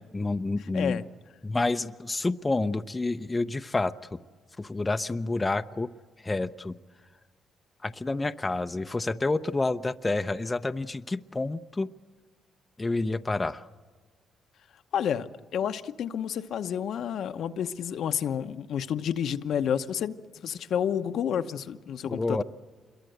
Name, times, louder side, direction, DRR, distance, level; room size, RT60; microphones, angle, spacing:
voice 1, 0.1-1.0 1.4-4.2 4.6-5.9 6.2-6.7 7.8-11.9 12.8-13.7 22.0-22.4, left 2 dB, 20° left, 9 dB, 0.7 m, -29 dB
voice 2, 14.9-15.3 15.5-20.1 20.4-22.4, left 8 dB, 70° left, 8 dB, 1.0 m, -30 dB
27.0 x 22.5 x 8.0 m, 1.5 s
cardioid pair, 90°, 0 cm